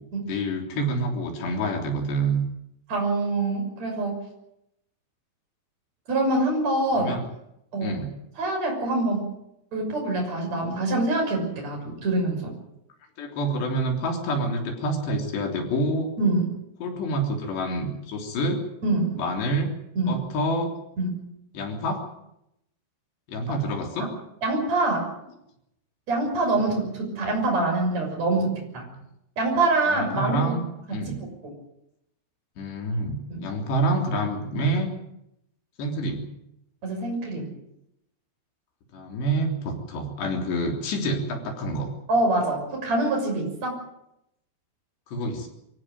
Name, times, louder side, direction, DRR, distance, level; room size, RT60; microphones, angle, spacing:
voice 1, 0.3-2.4 7.0-7.2 7.8-8.1 13.2-16.1 16.8-18.6 19.2-19.7 20.1-20.7 21.5-22.0 23.3-24.1 29.8-31.2 32.6-34.9 35.8-36.3 38.9-41.9 45.1-45.5, right 1 dB, 70° left, 2 dB, 5.6 m, -27 dB
voice 2, 2.9-4.2 6.1-7.2 7.7-8.0 8.4-9.3 9.7-12.5 16.2-16.5 18.8-19.2 20.0-20.1 21.0-21.1 24.0-24.1 24.4-25.1 26.1-28.8 29.4-30.6 30.9-31.3 33.3-33.4 36.8-37.5 42.1-43.8, right 2 dB, 35° right, 1 dB, 7.5 m, -25 dB
24.0 x 15.5 x 9.3 m, 0.82 s
omnidirectional pair, 5.2 m